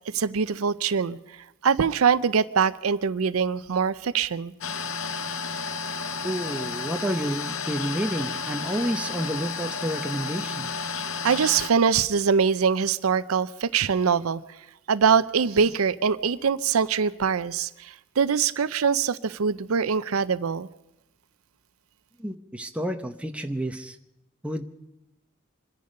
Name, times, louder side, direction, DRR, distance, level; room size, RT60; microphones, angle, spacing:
voice 1, 0.1-1.2 1.6-4.5 6.0-6.1 11.2-14.4 14.9-20.7, right 6 dB, 85° right, 16 dB, 0.5 m, -23 dB
sound 1, 4.6-11.7, left 5 dB, 65° left, 0.8 m, -32 dB
voice 2, 6.2-10.7 22.2-24.0 24.4-24.6, equal, 5° right, 5 dB, 0.9 m, -30 dB
26.0 x 10.5 x 5.3 m, 0.91 s
head